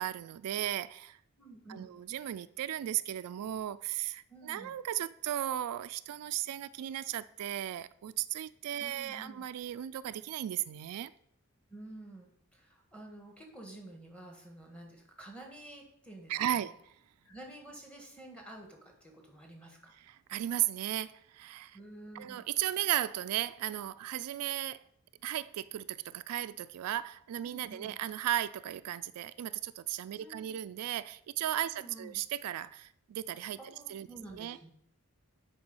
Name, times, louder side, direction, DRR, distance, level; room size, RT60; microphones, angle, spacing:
voice 1, 0.0-1.2 1.7-11.1 16.3-16.9 19.9-21.8 22.1-24.8 25.2-33.6 33.9-34.1 34.3-34.6, right 12 dB, 80° right, 0.3 m, -35 dB
voice 2, 1.4-2.0 4.3-4.7 8.8-9.5 11.7-16.7 17.2-20.0 21.7-22.4 27.4-28.0 30.1-30.6 31.7-32.2 33.6-34.7, right 1 dB, 5° left, 1.5 m, -50 dB
7.9 x 4.8 x 5.4 m
head